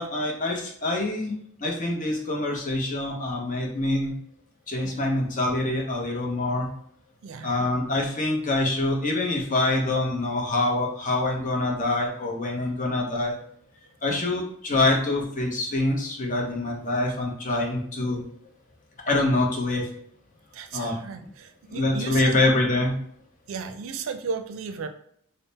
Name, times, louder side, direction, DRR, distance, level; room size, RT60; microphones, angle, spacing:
voice 1, 0.0-1.3 1.6-4.2 4.7-6.7 7.4-13.4 14.0-18.2 19.1-19.9 20.7-21.0 21.7-23.0, left 2 dB, 40° left, 0 dB, 0.7 m, -25 dB
voice 2, 7.2-7.7 14.1-14.3 20.5-22.4 23.5-24.9, right 5 dB, 70° right, 8 dB, 0.4 m, -35 dB
3.5 x 2.0 x 4.0 m, 0.66 s
head